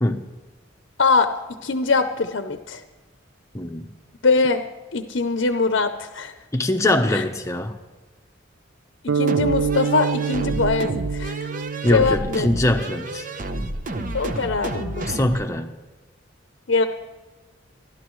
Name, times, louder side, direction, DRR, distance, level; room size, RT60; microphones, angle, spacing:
voice 1, 1.0-1.3 1.6-2.8 4.2-4.6 4.9-6.3 7.1-7.2 9.0-11.4 11.9-12.5 14.1-15.1 16.7-16.8, left 4 dB, 65° left, 8 dB, 0.7 m, -22 dB
voice 2, 3.5-3.9 6.5-7.8 11.8-13.3 15.1-15.7, left 1 dB, 15° left, 5 dB, 0.8 m, -22 dB
sound 1, 9.1-13.3, right 6 dB, 85° right, 0.6 m, -27 dB
sound 2, 9.3-15.5, right 1 dB, 40° right, 0.8 m, -30 dB
28.0 x 12.0 x 3.2 m, 1.2 s
head